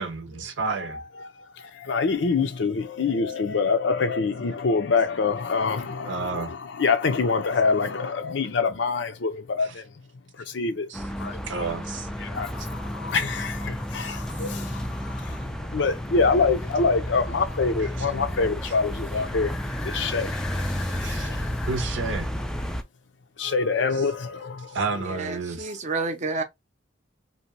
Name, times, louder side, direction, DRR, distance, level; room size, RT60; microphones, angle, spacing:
voice 1, 0.0-1.0 6.0-6.5 10.9-11.0 11.5-12.1 21.0-21.4 21.7-22.3 24.7-25.7, right 4 dB, 90° right, 0.7 m, -30 dB
voice 2, 0.9-9.8 10.5-10.9 11.2-11.7 12.2-15.4 15.7-21.7 23.4-24.8, left 4 dB, 75° left, 0.6 m, -26 dB
sound 1, 10.9-22.8, equal, 5° left, 0.3 m, -32 dB
voice 3, 25.0-26.4, right 3 dB, 40° right, 0.6 m, -30 dB
2.7 x 2.2 x 2.9 m
head